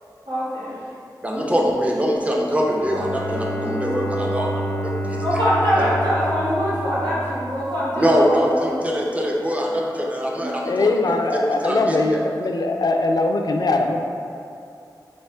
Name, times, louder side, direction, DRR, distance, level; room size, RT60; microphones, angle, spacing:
voice 1, 0.3-0.7 3.8-4.0 5.2-8.7 10.4-10.6, equal, 85° right, -10 dB, 1.4 m, -23 dB
voice 2, 1.2-5.2 5.8-5.9 8.0-12.0, equal, 15° right, -2 dB, 0.6 m, -23 dB
Bowed string instrument, 2.6-7.6, equal, 50° right, 0.9 m, -28 dB
voice 3, 10.7-14.0, left 2 dB, 60° left, 3 dB, 0.3 m, -21 dB
4.3 x 2.8 x 3.3 m, 2.5 s
cardioid pair, 45°, 8 cm